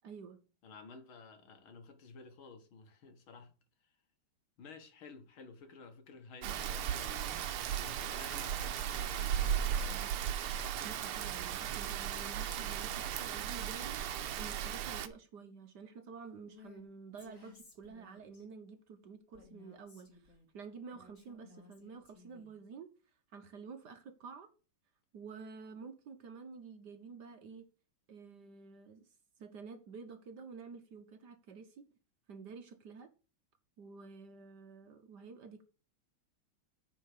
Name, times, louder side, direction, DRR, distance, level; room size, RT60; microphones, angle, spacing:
voice 1, 0.0-0.4 10.8-22.9 23.3-24.5 25.1-27.7 28.1-29.1 29.4-31.8 32.3-33.1 33.8-35.6, right 5 dB, 60° right, 1.4 m, -50 dB
voice 2, 0.6-3.5 3.8-4.0 4.6-10.0, left 4 dB, 70° left, 2.3 m, -53 dB
Rain, 6.4-15.1, right 9 dB, 85° right, 1.7 m, -36 dB
Female speech woman speaking, 16.5-16.8 17.2-18.4 19.3-20.5 20.9-22.6, left 4 dB, 35° left, 3.0 m, -58 dB
9.7 x 4.6 x 6.6 m
omnidirectional pair, 2.4 m